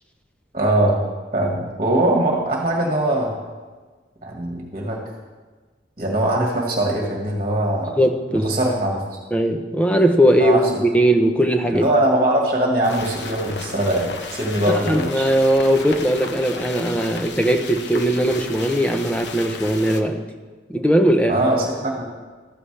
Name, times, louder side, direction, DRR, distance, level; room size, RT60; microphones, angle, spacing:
voice 1, 0.5-1.1 1.3-3.4 4.2-5.0 6.0-7.9 8.3-9.0 10.4-10.7 11.7-15.2 21.3-22.0, right 1 dB, 35° right, -1 dB, 1.8 m, -21 dB
voice 2, 8.0-8.5 9.3-11.9 14.7-20.3 20.7-21.4, right 1 dB, 5° left, 4 dB, 0.8 m, -19 dB
sound 1, 12.8-20.0, left 3 dB, 65° left, 1.0 m, -34 dB
14.5 x 13.0 x 3.4 m, 1.4 s
head